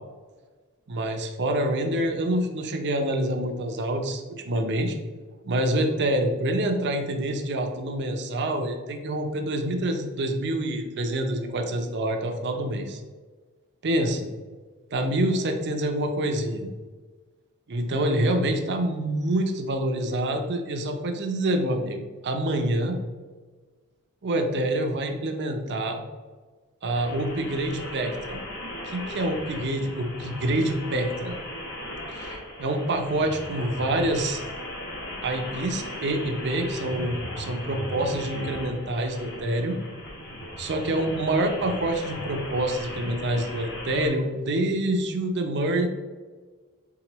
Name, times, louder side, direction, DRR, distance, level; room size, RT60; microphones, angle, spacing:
voice 1, 0.9-5.0 5.4-13.0 13.8-14.3 14.9-16.7 17.7-22.0 22.2-23.0 24.2-26.0 26.8-28.4 28.8-31.3 32.2-34.4 35.2-39.8 40.6-45.9, right 1 dB, 55° right, 5 dB, 0.6 m, -26 dB
sound 1, 26.9-44.1, left 1 dB, 50° left, 1.2 m, -37 dB
4.7 x 3.6 x 3.0 m, 1.4 s
head